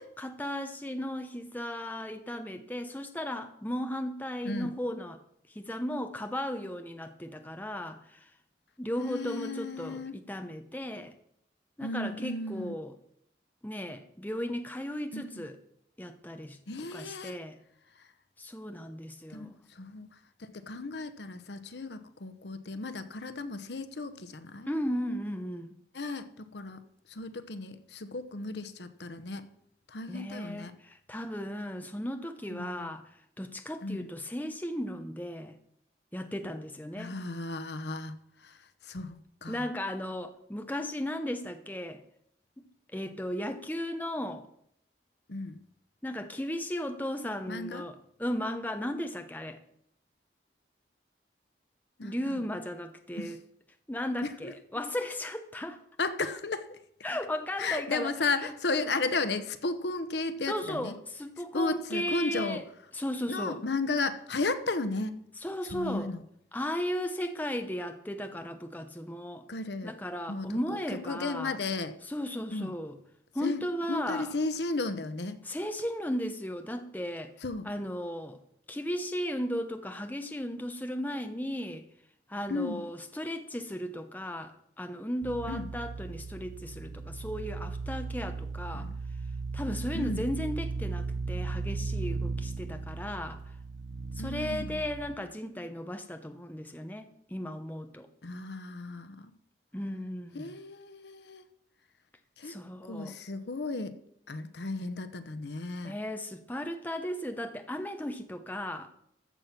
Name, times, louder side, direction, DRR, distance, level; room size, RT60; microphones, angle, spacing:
voice 1, 0.2-5.2 5.5-8.3 8.8-11.1 11.8-12.9 13.6-15.6 16.0-16.6 16.9-17.6 18.4-19.6 24.7-25.7 30.1-33.0 33.4-35.6 36.1-37.2 39.5-42.0 42.6-44.5 46.0-49.6 52.0-53.4 53.9-55.8 57.0-58.8 60.5-62.7 62.9-63.6 65.4-66.1 66.5-69.5 69.8-71.6 72.1-73.0 73.3-74.3 75.4-77.3 77.6-78.4 78.7-81.8 82.3-88.9 89.5-93.4 94.2-98.1 99.7-100.5 102.4-103.2 105.8-108.9, equal, 10° left, 0.8 m, -36 dB
voice 2, 9.0-10.2 11.8-12.8 15.1-15.5 16.7-17.3 19.3-20.1 20.5-24.7 25.9-26.8 27.1-29.5 29.9-30.7 32.5-32.9 33.8-34.1 37.0-39.7 45.3-45.6 47.5-47.8 52.0-52.3 53.2-53.3 54.2-54.5 56.0-56.8 57.6-60.9 61.5-62.6 63.3-65.2 65.7-66.2 69.5-69.9 70.3-72.0 72.5-72.7 73.4-73.6 73.9-75.4 77.4-77.7 82.5-82.8 85.5-85.7 88.7-89.0 89.9-90.2 94.2-94.8 98.2-99.3 100.3-101.4 102.4-102.6 102.8-104.0 104.3-105.9, left 3 dB, 75° left, 0.9 m, -34 dB
sound 1, 85.2-95.1, right 3 dB, 90° right, 0.9 m, -36 dB
14.5 x 7.2 x 6.0 m
head